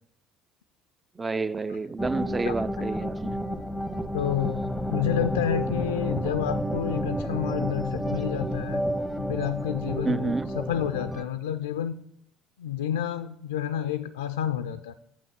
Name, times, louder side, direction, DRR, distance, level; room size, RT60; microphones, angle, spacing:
voice 1, 1.2-3.4 10.1-10.5, right 3 dB, 20° right, 0.4 m, -29 dB
sound 1, 2.0-11.2, equal, ahead, 0.8 m, -30 dB
voice 2, 2.4-2.9 4.1-8.8 9.2-11.9 12.6-14.9, left 10 dB, 75° left, 0.3 m, -30 dB
7.3 x 5.8 x 7.5 m
figure-of-eight pair, 60°, 0 cm